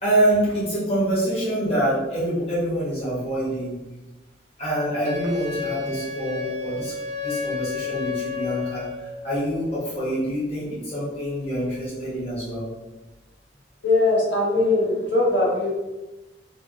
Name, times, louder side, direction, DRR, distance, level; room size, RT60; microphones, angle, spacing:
voice 1, 0.0-3.8 4.6-6.9 7.2-12.6, right 1 dB, 30° left, -10 dB, 1.2 m, -26 dB
Wind instrument woodwind instrument, 5.0-9.2, left 5 dB, 35° right, 0.3 m, -31 dB
voice 2, 13.8-15.7, left 2 dB, 65° left, -4 dB, 0.8 m, -20 dB
3.3 x 2.4 x 2.6 m, 1.1 s
head